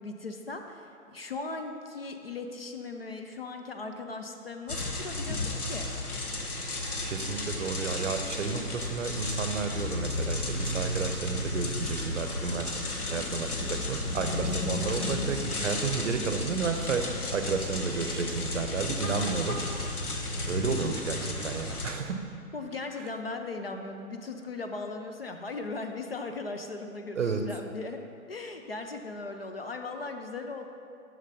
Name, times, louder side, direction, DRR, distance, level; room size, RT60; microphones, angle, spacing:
voice 1, 0.0-5.9 13.1-13.2 22.5-28.0 28.3-30.7, left 3 dB, 45° left, 5 dB, 0.4 m, -38 dB
sound 1, 4.7-21.9, left 2 dB, 85° left, 1.1 m, -33 dB
voice 2, 7.0-12.7 13.1-19.6 20.5-22.2 27.1-27.4, right 5 dB, 55° right, 7 dB, 0.7 m, -32 dB
6.5 x 6.4 x 4.2 m, 2.5 s
figure-of-eight pair, 140°, 44 cm